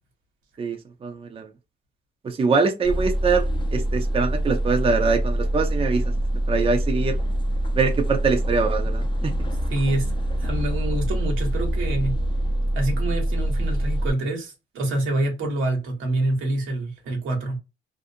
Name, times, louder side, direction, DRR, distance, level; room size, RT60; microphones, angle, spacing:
voice 1, 0.6-1.5 2.2-6.1 6.5-7.2 7.7-9.3, right 4 dB, 30° right, 0.5 m, -23 dB
sound 1, 2.8-14.1, right 1 dB, 25° left, 0.5 m, -25 dB
voice 2, 9.7-12.1 12.7-17.6, right 1 dB, 85° right, 1.1 m, -26 dB
2.5 x 2.0 x 2.6 m
cardioid pair, 90°, 20 cm